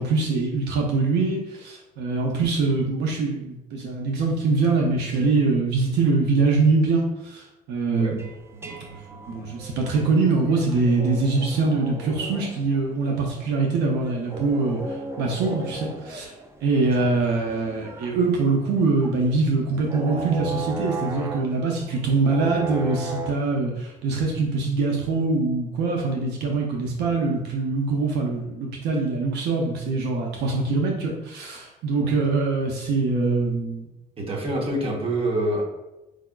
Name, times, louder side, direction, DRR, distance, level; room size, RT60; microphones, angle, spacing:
voice 1, 0.0-8.2 8.6-9.0 9.3-14.8 15.2-16.3 16.6-33.9, right 3 dB, 80° right, 0 dB, 0.6 m, -23 dB
sound 1, 8.2-23.5, right 2 dB, 15° right, 0.3 m, -37 dB
voice 2, 34.2-35.6, right 1 dB, 35° right, -1 dB, 0.9 m, -26 dB
4.8 x 2.3 x 2.2 m, 1.0 s
cardioid pair, 110°, 17 cm